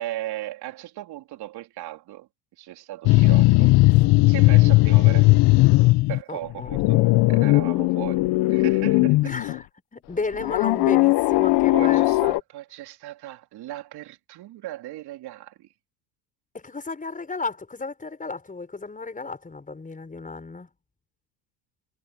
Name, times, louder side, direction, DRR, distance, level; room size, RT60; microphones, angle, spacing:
voice 1, 0.0-2.3 2.6-3.7 4.3-5.3 6.1-9.3 11.7-15.7, right 15 dB, 55° right, 3.8 m, -37 dB
sound 1, 3.0-6.2 6.5-9.6 10.4-12.4, left 21 dB, 60° left, 1.2 m, -18 dB
voice 2, 6.3-6.7 9.2-9.7 9.9-12.4 16.5-20.7, left 3 dB, 15° left, 5.8 m, -33 dB
hypercardioid pair, 85°, 46 cm